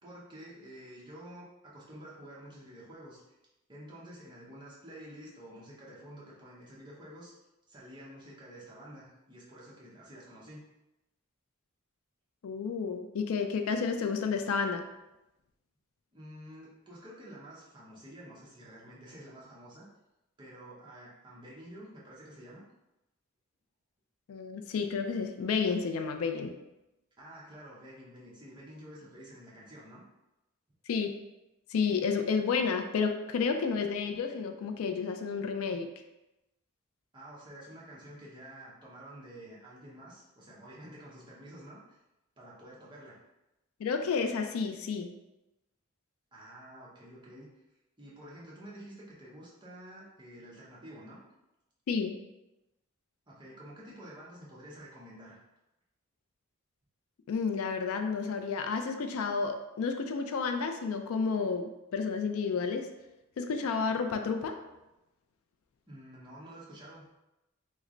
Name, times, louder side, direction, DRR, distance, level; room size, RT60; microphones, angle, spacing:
voice 1, 0.0-3.4 3.7-7.3 7.7-10.6 16.1-19.8 20.4-22.6 27.2-30.0 37.1-42.0 42.4-43.2 46.3-47.5 48.0-51.2 53.3-55.4 65.9-67.0, right 1 dB, 20° right, -6 dB, 0.8 m, -49 dB
voice 2, 12.4-14.8 24.3-26.5 30.9-31.1 31.7-35.9 43.8-45.1 51.9-52.1 57.3-62.9 63.4-64.6, left 5 dB, 80° left, 6 dB, 0.4 m, -31 dB
3.2 x 2.1 x 3.7 m, 0.95 s
head